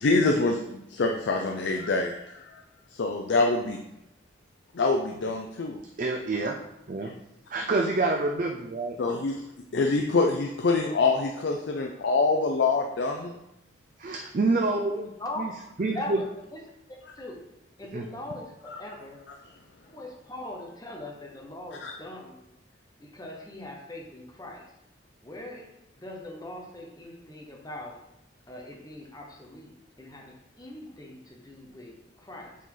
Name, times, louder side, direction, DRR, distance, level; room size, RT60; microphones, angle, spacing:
voice 1, 0.0-2.6 2.9-3.8 4.7-5.8 9.0-9.4 9.7-13.3 18.7-18.8 21.8-21.9, left 3 dB, 65° left, 3 dB, 0.5 m, -25 dB
voice 2, 6.0-6.6 6.9-7.1 7.5-9.0 14.0-15.5 15.8-16.2 17.9-18.0, right 3 dB, 45° right, 2 dB, 0.5 m, -27 dB
voice 3, 14.9-15.5 15.9-16.2 16.5-16.6 16.9-17.4 17.8-19.2 19.9-22.5 23.0-24.7 25.2-25.7 26.0-28.0 28.5-32.6, left 1 dB, 20° left, 0 dB, 1.0 m, -41 dB
7.4 x 4.1 x 3.8 m, 0.86 s
head